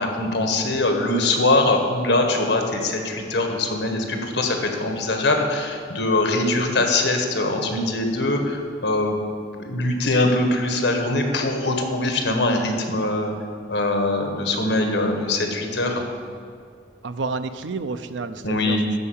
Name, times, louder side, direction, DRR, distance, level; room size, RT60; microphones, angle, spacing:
voice 1, 0.0-9.2 9.6-13.3 13.7-16.0 18.4-18.9, left 2 dB, 75° left, 4 dB, 1.6 m, -22 dB
voice 2, 17.0-19.0, right 3 dB, 85° right, 11 dB, 0.6 m, -30 dB
12.5 x 4.8 x 8.6 m, 2.3 s
head